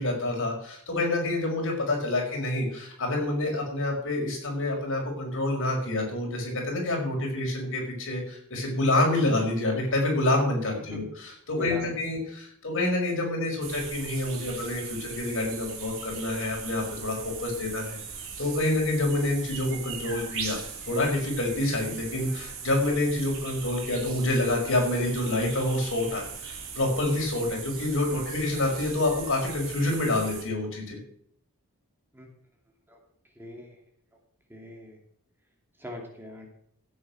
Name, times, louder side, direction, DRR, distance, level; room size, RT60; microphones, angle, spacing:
voice 1, 0.0-18.0 18.4-20.6 20.9-31.0, left 2 dB, 60° left, 0 dB, 5.4 m, -27 dB
voice 2, 11.5-11.9 28.1-28.3 32.1-32.3 32.9-33.0 33.4-33.8 34.5-35.0 35.8-36.5, left 1 dB, 10° right, 1 dB, 2.7 m, -40 dB
sound 1, 13.6-30.4, right 6 dB, 65° right, 3.4 m, -39 dB
15.0 x 8.7 x 6.1 m, 0.66 s
head